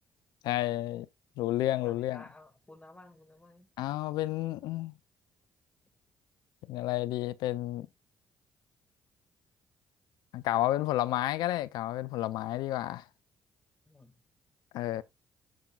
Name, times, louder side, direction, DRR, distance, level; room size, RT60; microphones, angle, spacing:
voice 1, 0.4-1.1 1.4-2.2 3.8-4.9 6.7-7.9 10.3-13.0 14.7-15.0, left 15 dB, 70° left, 0.4 m, -31 dB
voice 2, 1.8-3.7 13.9-14.1, left 2 dB, 15° left, 1.8 m, -53 dB
8.6 x 7.3 x 2.3 m
hypercardioid pair, 50°, 7 cm